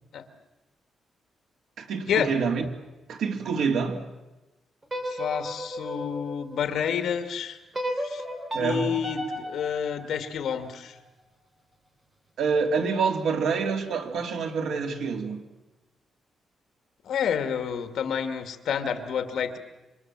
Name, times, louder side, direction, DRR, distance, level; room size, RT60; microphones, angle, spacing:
voice 1, 1.8-2.7 3.1-4.0 8.5-9.0 12.4-15.5, right 5 dB, 80° right, 3.1 m, -27 dB
sound 1, 4.8-7.0 7.7-10.9, equal, 20° right, 3.8 m, -35 dB
voice 2, 5.1-7.6 8.0-8.2 8.6-11.0 17.0-19.6, left 7 dB, 65° left, 2.2 m, -29 dB
27.0 x 25.5 x 7.6 m
wide cardioid pair, 180°, 0 cm